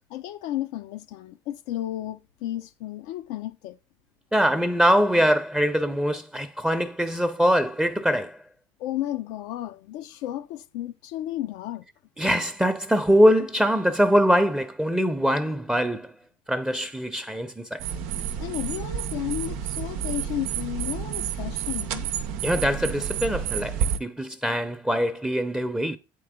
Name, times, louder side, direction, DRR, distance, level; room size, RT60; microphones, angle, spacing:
voice 1, 0.1-3.8 8.8-11.8 18.4-22.1, left 13 dB, 80° left, 0.6 m, -33 dB
voice 2, 4.3-8.4 12.2-16.1 16.5-17.8 22.4-26.0, equal, 5° right, 0.7 m, -23 dB
sound 1, 17.8-24.0, right 8 dB, 80° right, 0.7 m, -30 dB
7.6 x 4.5 x 3.7 m
supercardioid pair, 80°, 11 cm